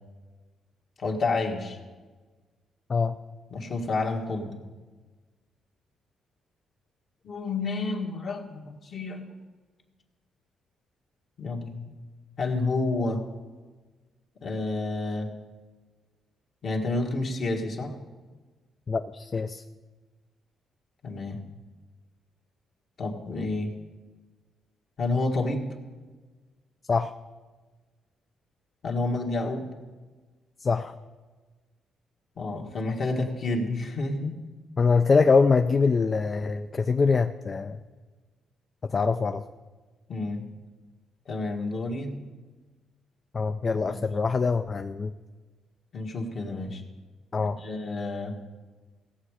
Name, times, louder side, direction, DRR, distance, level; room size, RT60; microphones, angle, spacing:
voice 1, 1.0-1.8 3.5-4.5 7.2-9.3 11.4-11.9 12.4-13.2 14.4-15.3 16.6-18.0 21.0-21.4 23.0-23.7 25.0-25.7 28.8-29.7 32.4-34.4 40.1-40.5 41.2-42.2 43.9-44.0 45.9-46.8 47.4-48.4, left 2 dB, 55° left, 0 dB, 1.8 m, -29 dB
voice 2, 18.9-19.6 26.9-27.1 30.6-30.9 34.8-37.8 38.9-39.4 43.3-45.1 47.3-47.6, left 4 dB, 35° left, 8 dB, 0.4 m, -24 dB
16.5 x 7.3 x 4.9 m, 1.3 s
cardioid pair, 90°, 0 cm